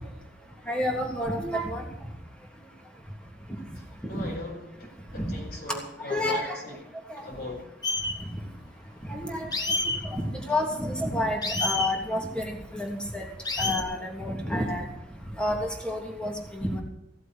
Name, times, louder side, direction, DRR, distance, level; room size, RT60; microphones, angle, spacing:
voice 1, 0.7-1.8 4.1-4.3 5.1-5.3 6.1-6.6 7.1-7.2 9.0-9.5 10.0-13.3 13.6-14.9 15.4-16.8, left 1 dB, 5° left, 1 dB, 3.1 m, -29 dB
voice 2, 3.7-6.8 7.2-7.7, left 2 dB, 60° left, -2 dB, 5.6 m, -39 dB
sound 1, 7.8-8.1 9.5-10.0 11.4-11.9 13.4-13.8, left 2 dB, 25° left, 1.9 m, -28 dB
15.5 x 8.1 x 8.1 m, 0.87 s
head